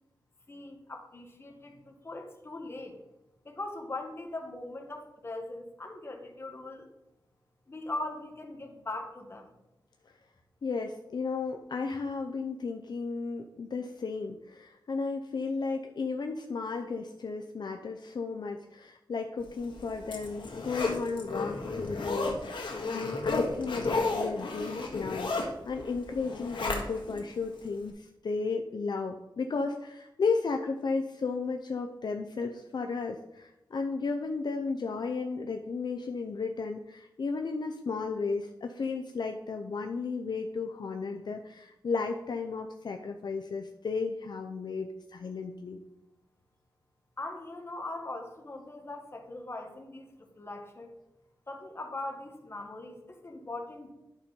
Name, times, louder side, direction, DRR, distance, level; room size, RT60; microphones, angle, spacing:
voice 1, 0.5-3.0 3.4-6.9 7.7-9.5 47.2-50.9 51.5-53.9, left 2 dB, 30° left, 3 dB, 1.3 m, -40 dB
voice 2, 10.6-45.8, left 4 dB, 60° left, 4 dB, 0.6 m, -34 dB
Zipper (clothing), 19.6-27.2 27.6-27.7, left 3 dB, 75° left, 1.7 m, -33 dB
11.0 x 4.4 x 5.4 m, 0.94 s
wide cardioid pair, 150°, 8 cm